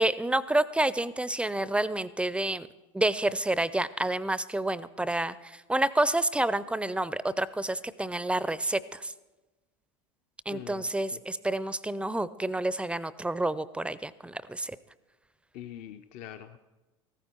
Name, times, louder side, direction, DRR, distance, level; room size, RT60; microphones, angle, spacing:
voice 1, 0.0-2.7 2.9-9.1 10.5-14.8, right 1 dB, 5° right, 18 dB, 0.5 m, -29 dB
voice 2, 10.5-10.9 15.5-16.6, left 10 dB, 50° left, 8 dB, 0.6 m, -43 dB
14.5 x 14.0 x 4.4 m, 1.2 s
hypercardioid pair, 80°, 17 cm